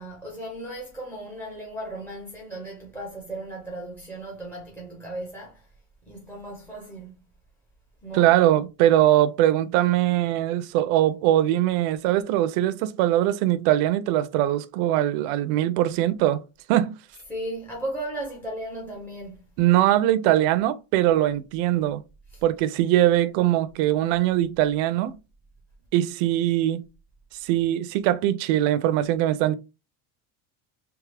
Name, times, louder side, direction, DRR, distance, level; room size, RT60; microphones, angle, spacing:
voice 1, 0.0-5.7 6.1-7.3 8.0-8.3 17.3-19.5 22.3-22.4, right 1 dB, 5° left, 0.6 m, -36 dB
voice 2, 8.1-16.4 16.7-16.9 19.6-22.0 22.4-25.2 25.9-26.8 27.4-29.5, right 13 dB, 75° right, 0.6 m, -21 dB
3.5 x 3.2 x 3.3 m
cardioid pair, 165°, 44 cm